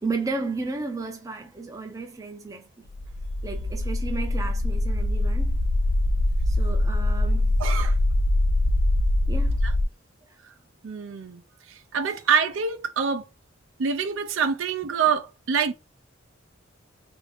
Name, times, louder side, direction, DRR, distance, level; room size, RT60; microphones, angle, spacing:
voice 1, 0.0-2.9 3.4-5.6 6.5-7.6 9.3-9.6, right 3 dB, 15° right, 0.4 m, -33 dB
sound 1, 2.9-9.8, left 1 dB, 65° left, 0.4 m, -23 dB
voice 2, 7.6-8.0 9.6-9.7 10.8-11.4 11.9-13.3 13.8-15.7, right 6 dB, 70° right, 0.4 m, -25 dB
2.6 x 2.5 x 3.3 m
head